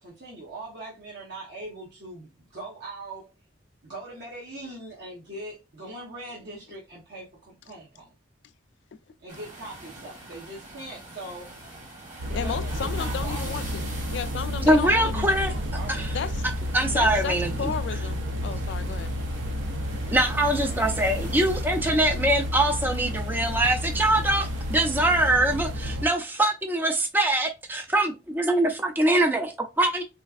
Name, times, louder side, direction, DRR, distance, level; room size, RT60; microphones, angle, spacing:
voice 1, 0.0-3.3 3.8-8.1 9.2-11.5 12.3-14.0 15.5-16.2, right 2 dB, 60° right, 0.9 m, -41 dB
sound 1, 9.3-25.3, right 1 dB, 35° right, 1.4 m, -43 dB
sound 2, 12.2-26.1, left 1 dB, 80° right, 0.5 m, -31 dB
voice 2, 12.3-13.8 14.1-15.3 16.1-16.3 16.9-19.1, left 7 dB, 70° left, 0.3 m, -33 dB
voice 3, 14.7-15.5 15.9-16.1 16.7-17.7 20.1-30.0, right 1 dB, 10° right, 0.3 m, -23 dB
4.1 x 2.4 x 2.4 m
head